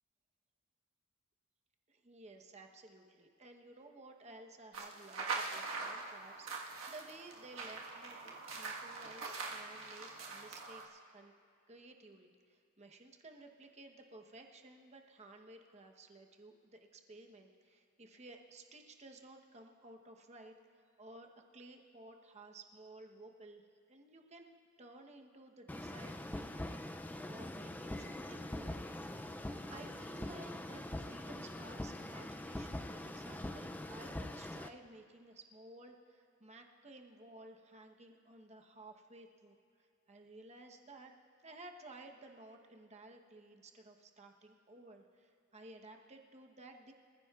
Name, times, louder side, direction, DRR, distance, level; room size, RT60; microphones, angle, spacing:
voice 1, 1.9-11.3 11.7-28.9 29.3-29.4 29.7-41.1 41.4-46.9, right 2 dB, 30° right, 3 dB, 1.0 m, -55 dB
sound 1, 4.7-10.9, right 4 dB, 65° right, 1.5 m, -43 dB
sound 2, 25.7-34.7, left 1 dB, 10° left, 0.3 m, -43 dB
26.0 x 15.0 x 2.4 m, 2.3 s
head